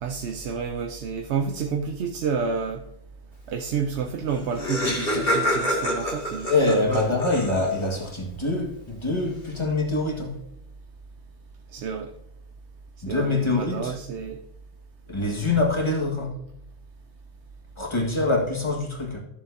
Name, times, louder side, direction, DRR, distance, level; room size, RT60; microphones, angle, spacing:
voice 1, 0.0-2.8 3.5-6.5 6.8-7.1 11.7-12.1 13.1-14.4, right 6 dB, 80° right, 1.0 m, -29 dB
Laughter, 4.0-4.1 4.3-8.0, left 1 dB, 55° left, 2.4 m, -27 dB
voice 2, 6.5-10.4 13.0-13.9 15.1-16.4 17.8-19.2, left 2 dB, 25° left, 1.8 m, -25 dB
13.5 x 7.2 x 2.7 m
omnidirectional pair, 1.1 m